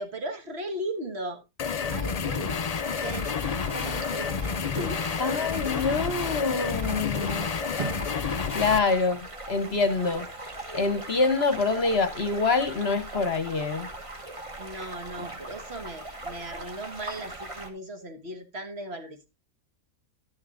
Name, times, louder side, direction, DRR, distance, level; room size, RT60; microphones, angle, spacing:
voice 1, 0.0-1.4 1.9-3.3 3.7-4.3 4.7-5.3 8.5-8.6 14.6-19.3, right 1 dB, 45° right, 1.7 m, -37 dB
sound 1, 1.6-8.8, left 6 dB, 80° left, 0.3 m, -30 dB
sound 2, 2.7-17.7, right 2 dB, 25° right, 1.4 m, -40 dB
sound 3, 4.6-5.1 7.7-8.2 8.7-8.8, right 6 dB, 70° right, 0.4 m, -36 dB
voice 2, 5.2-7.5 8.5-10.3 10.7-13.9 15.2-15.3, left 4 dB, 50° left, 1.1 m, -26 dB
12.0 x 10.5 x 2.5 m
omnidirectional pair, 1.5 m